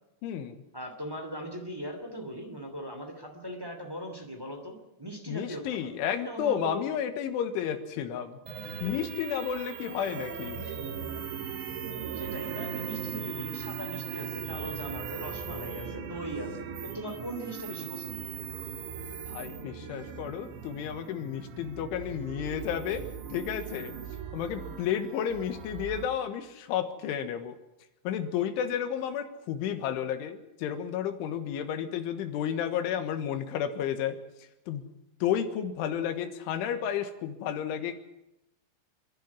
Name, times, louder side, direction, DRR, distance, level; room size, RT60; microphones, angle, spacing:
voice 1, 0.2-0.6 5.3-8.4 8.8-10.7 19.3-23.9 24.3-27.6 28.1-34.2 34.7-34.8 35.2-38.0, left 9 dB, 75° left, 8 dB, 3.8 m, -32 dB
voice 2, 0.7-5.9 6.2-6.9 12.1-18.3, equal, 15° right, 3 dB, 0.8 m, -39 dB
sound 1, 8.5-26.1, right 7 dB, 65° right, 3.8 m, -39 dB
26.5 x 11.0 x 9.9 m, 0.90 s
omnidirectional pair, 5.8 m